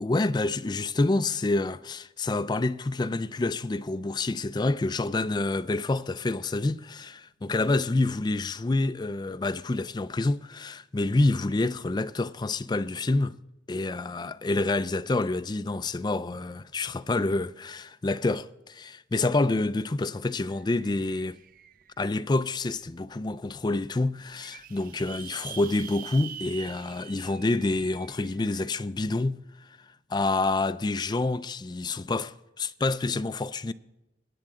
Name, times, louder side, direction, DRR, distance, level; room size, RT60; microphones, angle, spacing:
voice 1, 0.0-13.4 13.7-21.4 22.0-29.8 30.1-33.7, left 2 dB, 25° left, 0.4 m, -28 dB
sound 1, 19.6-19.7 20.0-22.1 22.7-22.8 23.2-23.3 23.4-23.5 24.1-28.7, right 10 dB, 50° right, 0.5 m, -45 dB
20.5 x 8.8 x 3.7 m
head